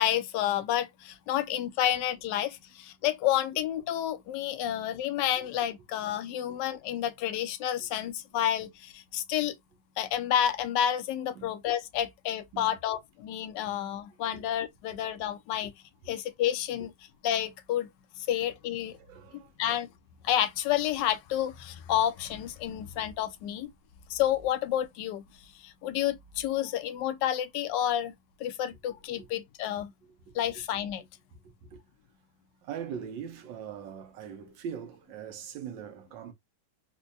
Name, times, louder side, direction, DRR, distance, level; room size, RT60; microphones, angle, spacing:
voice 1, 0.0-9.6 10.0-15.7 16.1-16.9 17.2-17.9 18.2-19.0 19.6-19.9 20.2-23.7 24.1-25.2 25.5-28.1 28.4-29.9 30.3-31.0, left 11 dB, 75° left, 1.2 m, -30 dB
voice 2, 19.0-19.8 29.1-29.3 30.3-30.4 31.3-31.8 32.6-36.3, right 8 dB, 90° right, 1.5 m, -42 dB
4.4 x 2.2 x 2.5 m
omnidirectional pair, 2.0 m